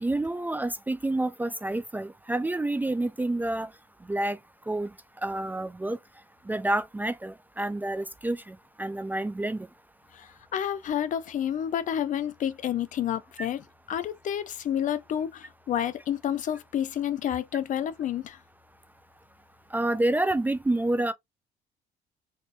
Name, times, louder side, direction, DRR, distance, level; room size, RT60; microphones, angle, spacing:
voice 1, 0.0-3.7 4.1-4.4 4.7-4.9 5.2-6.0 6.5-9.7 19.7-21.1, right 1 dB, 10° right, 0.3 m, -28 dB
voice 2, 10.5-18.4, left 10 dB, 50° left, 0.5 m, -29 dB
3.5 x 2.5 x 2.7 m
cardioid pair, 110°, 17 cm